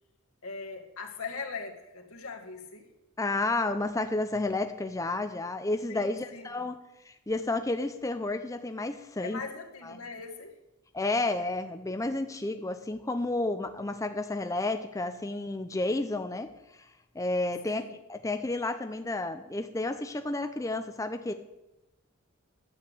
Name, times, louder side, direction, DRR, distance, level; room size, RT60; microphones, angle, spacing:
voice 1, 0.4-2.9 5.9-6.7 9.2-10.5 17.6-18.0, left 4 dB, 80° left, 2 dB, 2.0 m, -41 dB
voice 2, 3.2-6.8 7.1-9.4 10.9-16.5 17.1-17.8 18.1-21.3, left 2 dB, 15° left, 7 dB, 0.5 m, -31 dB
11.5 x 8.1 x 8.2 m, 0.95 s
head